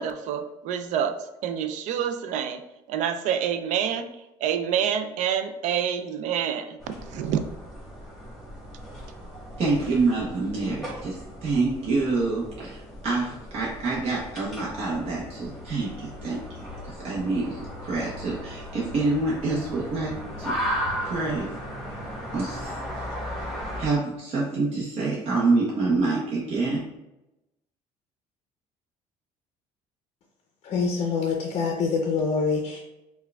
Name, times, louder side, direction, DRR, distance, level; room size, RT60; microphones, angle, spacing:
voice 1, 0.0-4.1 4.4-6.8 7.1-7.4, right 8 dB, 65° right, 9 dB, 0.4 m, -27 dB
sound 1, 6.8-23.9, equal, ahead, 1.2 m, -36 dB
voice 2, 9.6-20.1 20.4-20.8 21.0-21.5 21.9-22.0 22.3-22.8 23.8-26.8, right 3 dB, 50° right, -5 dB, 0.8 m, -27 dB
voice 3, 30.6-32.8, left 5 dB, 50° left, 0 dB, 0.5 m, -25 dB
4.5 x 2.2 x 2.2 m, 0.93 s
cardioid pair, 120°, 13 cm